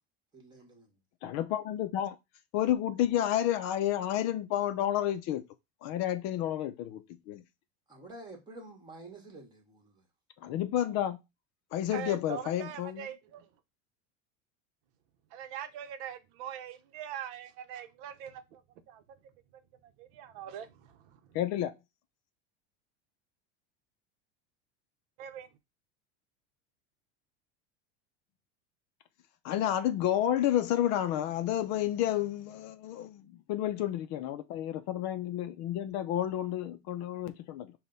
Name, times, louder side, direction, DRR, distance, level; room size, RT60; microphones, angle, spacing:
voice 1, 0.3-0.9 7.9-10.0, right 2 dB, 10° right, 1.5 m, -49 dB
voice 2, 1.2-2.2 2.5-5.4 5.8-7.4 10.4-11.2 11.7-13.1 21.3-21.7 29.4-37.7, left 11 dB, 50° left, 0.5 m, -30 dB
voice 3, 11.9-13.5 15.3-18.6 18.9-19.0 20.0-21.4 25.2-25.5, right 10 dB, 60° right, 0.8 m, -42 dB
5.3 x 2.3 x 3.9 m
supercardioid pair, 120°, 36 cm